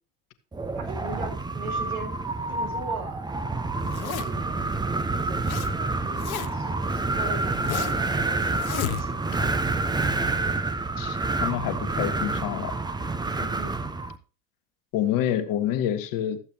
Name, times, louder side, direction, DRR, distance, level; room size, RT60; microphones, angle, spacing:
Wind, 0.5-14.2, right 3 dB, 10° right, 0.8 m, -28 dB
voice 1, 0.7-2.2 2.5-3.2 3.8-9.4 13.2-13.8, right 3 dB, 75° right, 1 dB, 4.3 m, -40 dB
Zipper (clothing), 3.8-4.5 5.1-5.7 6.0-6.7 7.2-8.1 8.5-9.4, left 11 dB, 75° left, 1.1 m, -33 dB
voice 2, 11.0-12.7 14.9-16.4, left 11 dB, 50° left, 9 dB, 1.5 m, -27 dB
14.0 x 8.1 x 3.0 m, 0.35 s
figure-of-eight pair, 75°, 43 cm